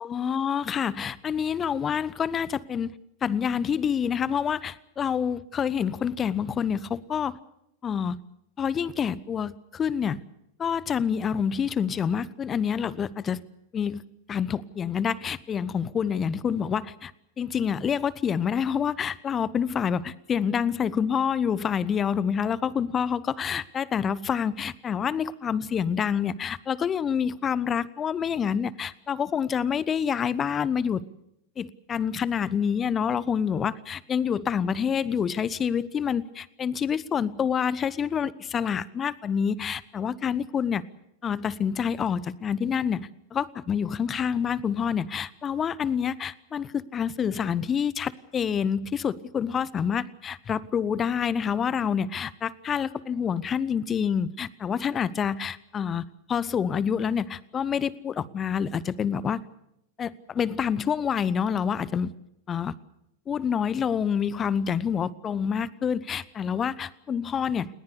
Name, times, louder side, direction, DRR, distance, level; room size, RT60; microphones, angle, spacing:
voice 1, 0.0-2.9 3.2-7.4 7.8-8.2 8.6-10.2 10.6-13.4 13.7-14.0 14.3-17.1 17.4-31.0 31.6-40.8 41.2-59.4 60.0-62.1 62.5-62.7 63.3-67.7, left 7 dB, 25° left, 21 dB, 1.0 m, -27 dB
29.5 x 20.5 x 6.8 m, 0.78 s
figure-of-eight pair, 90°, 0 cm